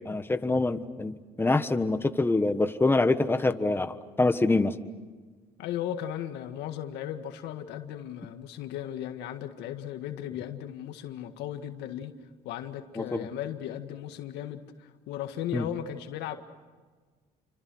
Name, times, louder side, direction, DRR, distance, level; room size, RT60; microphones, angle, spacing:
voice 1, 0.0-4.7 13.1-13.3 15.5-15.6, left 2 dB, 15° left, 10 dB, 1.4 m, -25 dB
voice 2, 5.6-12.1 12.4-16.4, left 11 dB, 90° left, 7 dB, 1.8 m, -36 dB
29.5 x 25.0 x 6.3 m, 1.4 s
cardioid pair, 110°, 17 cm